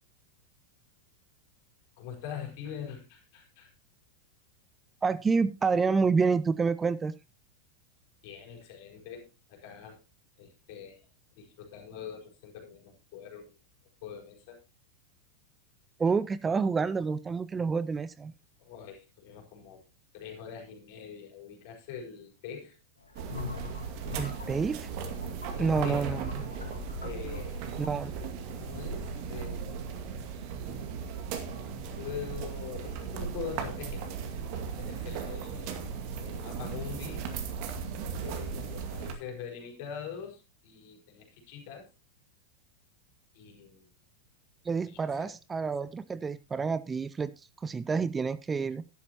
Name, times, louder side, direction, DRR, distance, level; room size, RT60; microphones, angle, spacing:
voice 1, 2.0-3.7 8.2-10.0 10.4-11.1 11.3-13.6 14.0-14.6 18.6-19.8 20.1-22.8 25.5-26.1 27.0-27.7 28.6-30.1 32.0-34.0 34.7-35.9 36.1-37.3 38.2-41.9 43.3-43.9 44.9-45.3, left 7 dB, 50° left, 1 dB, 4.8 m, -43 dB
voice 2, 5.0-7.1 16.0-18.3 24.2-24.9 25.6-26.3 27.8-28.1 44.6-48.8, right 5 dB, 15° right, 16 dB, 0.5 m, -28 dB
sound 1, 23.0-28.3, left 5 dB, 80° left, 2.1 m, -43 dB
sound 2, 23.1-39.1, right 5 dB, 45° right, 2.3 m, -37 dB
12.0 x 12.0 x 2.9 m, 0.27 s
figure-of-eight pair, 90°, 0 cm